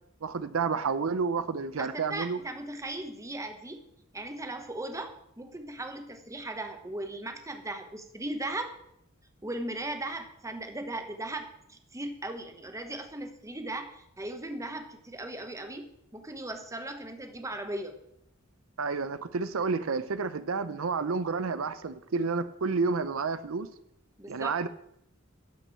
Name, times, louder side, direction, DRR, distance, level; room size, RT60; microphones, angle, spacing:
voice 1, 0.2-2.4 18.8-23.7 24.3-24.7, right 4 dB, 80° right, 13 dB, 0.6 m, -30 dB
voice 2, 1.8-3.8 4.1-8.7 9.4-18.0 24.2-24.6, right 1 dB, 15° right, 6 dB, 1.2 m, -38 dB
12.0 x 5.4 x 7.6 m, 0.75 s
head